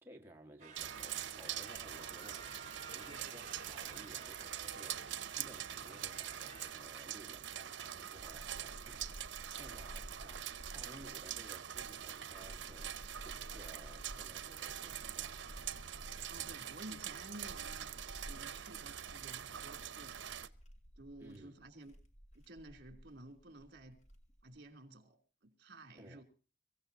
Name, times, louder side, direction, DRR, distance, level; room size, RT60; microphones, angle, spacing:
voice 1, 0.0-2.4 2.9-9.2 9.5-13.0 13.2-15.4 21.2-21.6 26.0-26.2, right 1 dB, 10° right, 1.6 m, -57 dB
sound 1, 0.6-6.7, right 4 dB, 40° right, 2.4 m, -54 dB
sound 2, 0.8-20.5, right 10 dB, 80° right, 0.8 m, -44 dB
sound 3, 7.9-24.6, equal, 40° left, 2.1 m, -54 dB
voice 2, 16.3-17.9 18.2-20.2 21.0-22.0 22.5-24.0 24.4-26.2, right 1 dB, 55° right, 2.9 m, -53 dB
24.0 x 15.5 x 2.8 m
head